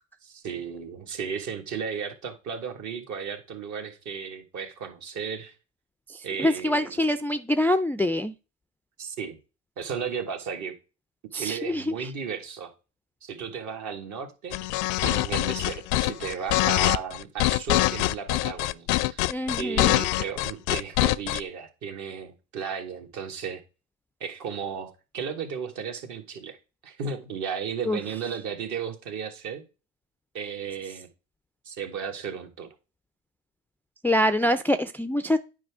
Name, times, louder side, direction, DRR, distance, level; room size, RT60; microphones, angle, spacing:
voice 1, 0.2-5.5 6.2-7.1 9.0-9.4 9.8-10.7 11.3-12.7 13.2-14.6 15.0-19.2 19.5-23.6 24.2-26.6 26.8-29.6 30.3-31.1 31.7-32.7, right 6 dB, 55° right, 1.7 m, -34 dB
voice 2, 6.1-8.3 11.3-11.9 19.3-20.1 27.9-28.0 34.0-35.4, left 1 dB, 5° left, 0.3 m, -25 dB
sound 1, 14.5-21.4, left 19 dB, 65° left, 0.5 m, -24 dB
9.3 x 4.9 x 3.5 m
supercardioid pair, 80°, 34 cm